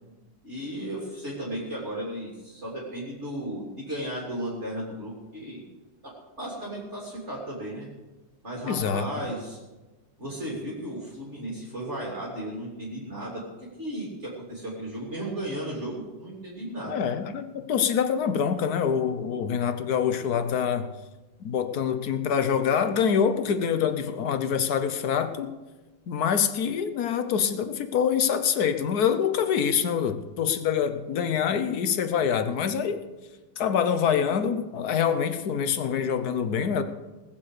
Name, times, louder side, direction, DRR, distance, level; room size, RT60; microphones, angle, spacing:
voice 1, 0.4-5.6 6.0-6.1 6.4-7.9 8.4-9.6 10.2-13.4 13.8-17.1, right 1 dB, 35° right, -4 dB, 3.2 m, -35 dB
voice 2, 8.7-9.2 16.9-20.9 21.4-25.5 26.1-33.0 33.6-36.8, left 7 dB, 60° left, 9 dB, 1.3 m, -25 dB
19.5 x 7.7 x 6.6 m, 1.2 s
omnidirectional pair, 2.2 m